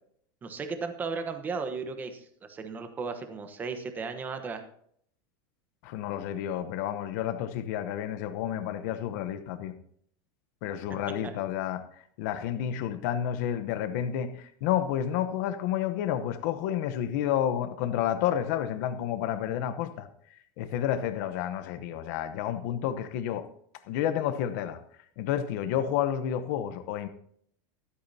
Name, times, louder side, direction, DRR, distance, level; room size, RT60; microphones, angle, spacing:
voice 1, 0.4-4.6, right 4 dB, 15° right, 7 dB, 1.1 m, -35 dB
voice 2, 5.8-9.7 10.6-11.8 12.2-20.1 20.6-23.5 23.9-24.8 25.2-27.1, left 10 dB, 55° left, 10 dB, 1.0 m, -30 dB
23.5 x 8.5 x 2.8 m, 0.64 s
supercardioid pair, 165°, 11 cm